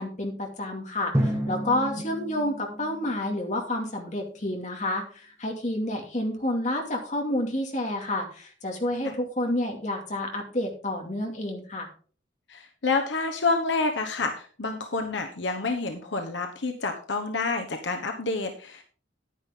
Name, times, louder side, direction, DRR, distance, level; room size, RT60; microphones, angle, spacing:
voice 1, 0.0-11.9, left 1 dB, 40° left, 2 dB, 2.4 m, -29 dB
Drum, 1.1-3.9, equal, 15° right, 1.9 m, -31 dB
voice 2, 12.5-18.8, left 3 dB, 70° left, 4 dB, 1.1 m, -28 dB
10.0 x 9.8 x 3.8 m, 0.42 s
head